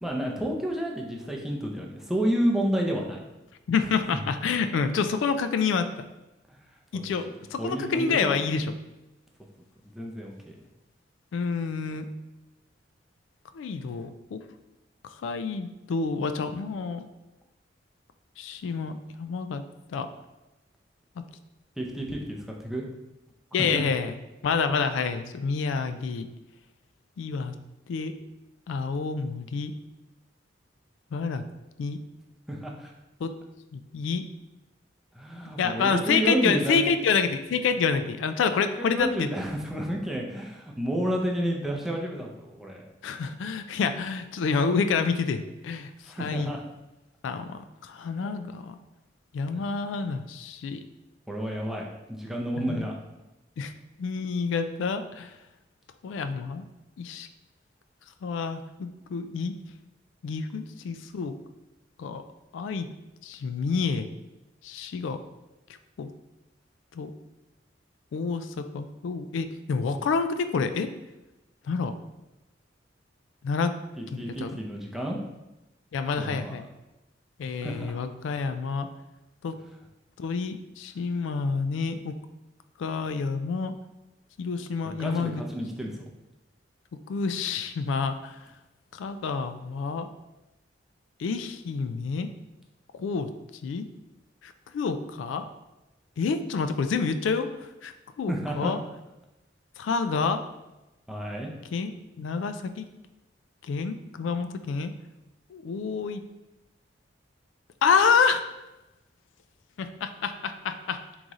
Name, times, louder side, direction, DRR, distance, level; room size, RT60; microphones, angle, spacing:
voice 1, 0.0-3.2 4.1-4.2 6.9-7.0 7.6-8.4 9.9-10.6 21.8-22.8 23.7-23.8 32.5-32.9 35.2-36.9 38.6-42.8 46.0-46.6 48.2-48.3 51.3-52.9 74.0-75.2 76.2-76.5 77.6-77.9 85.0-86.1 98.3-98.7 101.1-101.5, equal, ahead, -1 dB, 0.5 m, -30 dB
voice 2, 3.7-6.0 6.9-8.7 11.3-12.1 13.5-14.4 15.0-17.1 18.4-19.6 19.9-20.1 23.5-26.3 27.2-27.5 27.9-28.1 28.7-29.7 31.1-31.4 31.8-32.0 33.2-33.3 33.7-34.2 35.6-39.3 43.0-46.5 47.2-48.8 49.3-50.8 52.6-52.9 53.6-53.7 54.0-55.3 56.0-56.6 57.0-57.3 58.2-59.6 60.2-61.3 62.0-62.2 62.5-62.9 63.2-64.1 64.6-65.2 66.0-66.1 66.9-67.1 68.1-70.9 71.7-71.9 73.4-73.7 74.1-74.5 75.9-76.7 77.4-78.9 79.4-79.5 80.2-82.1 82.8-83.7 84.4-85.4 87.1-88.4 88.9-90.1 91.2-92.3 92.9-93.3 93.6-93.9 94.4-95.4 96.2-98.8 99.8-100.4 101.7-102.9 103.6-104.9 105.5-106.2 107.8-108.4 109.8-111.0, left 5 dB, 85° left, 9 dB, 0.3 m, -28 dB
3.9 x 3.1 x 3.6 m, 0.99 s
head